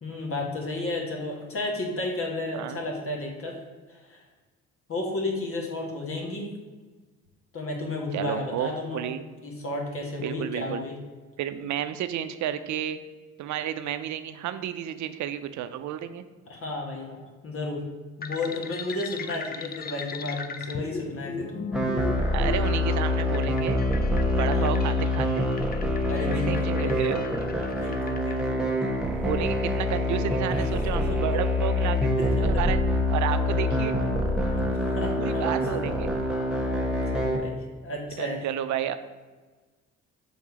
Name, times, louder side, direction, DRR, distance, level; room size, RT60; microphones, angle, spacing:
voice 1, 0.0-3.6 3.9-4.2 4.9-6.5 7.5-9.0 9.4-11.0 16.5-17.8 18.2-21.5 24.5-24.9 26.1-26.9 27.8-28.9 30.5-30.6 31.1-31.2 32.2-32.5 34.6-35.4 36.6-38.5, left 2 dB, 45° left, -1 dB, 1.4 m, -33 dB
voice 2, 8.1-8.7 8.9-9.2 10.2-10.8 11.4-13.0 13.4-16.2 22.3-23.9 24.3-25.5 26.3-27.2 29.2-32.1 32.4-32.8 33.1-34.0 35.2-36.1 38.2-39.0, right 10 dB, 70° right, 11 dB, 0.5 m, -31 dB
sound 1, 18.2-28.4, left 4 dB, 30° left, 0.5 m, -37 dB
sound 2, 21.7-37.4, left 1 dB, ahead, 0.9 m, -25 dB
5.5 x 3.8 x 4.8 m, 1.3 s
cardioid pair, 90°, 30 cm